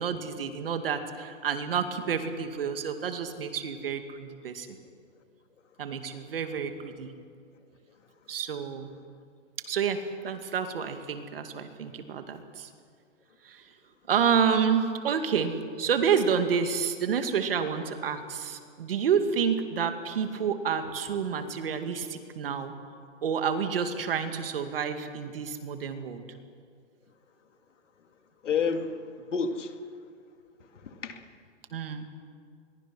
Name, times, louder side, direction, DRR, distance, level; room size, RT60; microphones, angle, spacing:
voice 1, 0.0-4.8 5.8-7.1 8.3-8.9 9.7-12.7 13.4-13.7 14.1-22.7 23.2-26.2 31.7-32.0, right 7 dB, 50° right, 7 dB, 2.2 m, -29 dB
voice 2, 28.4-29.8 30.8-31.2, left 5 dB, 80° left, 6 dB, 2.5 m, -30 dB
27.0 x 22.0 x 6.1 m, 2.2 s
hypercardioid pair, 175°, 36 cm